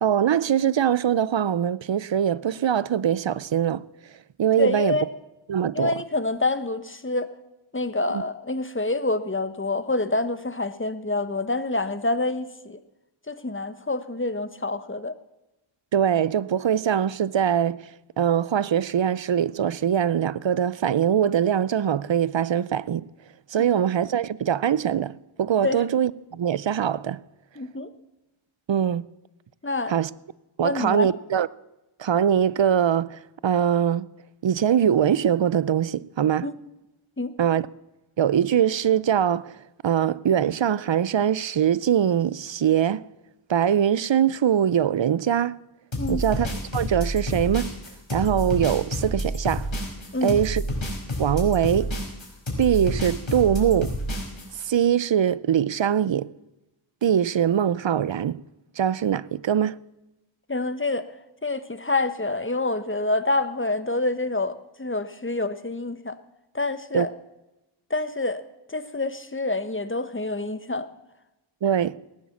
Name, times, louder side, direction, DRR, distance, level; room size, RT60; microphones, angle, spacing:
voice 1, 0.0-3.8 4.4-5.0 5.5-5.9 8.1-8.2 15.9-17.8 18.2-23.0 23.5-27.2 28.7-29.1 29.9-30.1 30.6-31.5 32.0-34.1 34.4-36.5 37.4-37.6 38.2-39.5 39.8-43.0 43.5-45.6 46.1-47.7 48.1-49.7 50.2-50.6 51.2-52.0 52.6-54.0 54.6-56.3 57.0-58.4 58.8-59.8 66.9-67.1 71.6-72.0, right 9 dB, 65° right, 0.6 m, -22 dB
voice 2, 4.6-5.1 5.7-7.3 7.7-12.8 13.3-15.2 25.6-25.8 27.6-27.9 29.6-29.9 30.6-31.1 36.4-36.6 37.2-37.3 46.0-46.2 50.1-50.4 60.5-61.1 61.4-66.2 66.5-67.1 67.9-68.4 68.7-70.9, left 2 dB, 25° left, 1.1 m, -27 dB
sound 1, 45.9-54.6, equal, 65° left, 5.1 m, -29 dB
18.5 x 9.7 x 7.2 m
wide cardioid pair, 50°, 49 cm